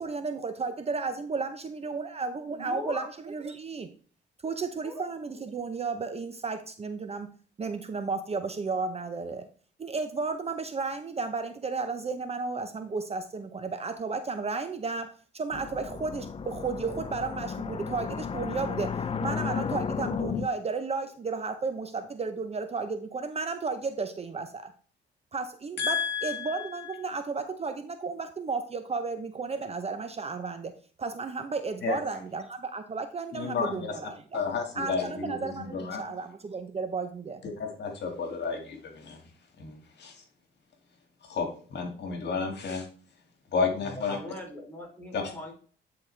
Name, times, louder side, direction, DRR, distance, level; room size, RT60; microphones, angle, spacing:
voice 1, 0.0-3.9 4.4-7.3 7.6-9.5 9.8-24.7 25.3-30.7 31.0-34.4 34.7-37.4, right 4 dB, 30° right, 8 dB, 0.7 m, -33 dB
voice 2, 2.5-3.1 4.8-5.0 43.9-45.5, left 1 dB, 10° left, 0 dB, 3.1 m, -40 dB
sound 1, 15.5-20.5, left 6 dB, 30° left, 0.5 m, -33 dB
voice 3, 25.8-26.9 31.8-32.0 33.3-34.0 34.3-36.1 37.6-39.2 39.6-40.2 41.2-42.9 43.5-44.2 45.1-45.3, left 5 dB, 60° left, 3 dB, 1.9 m, -32 dB
9.9 x 4.2 x 3.3 m, 0.42 s
cardioid pair, 90°, 20 cm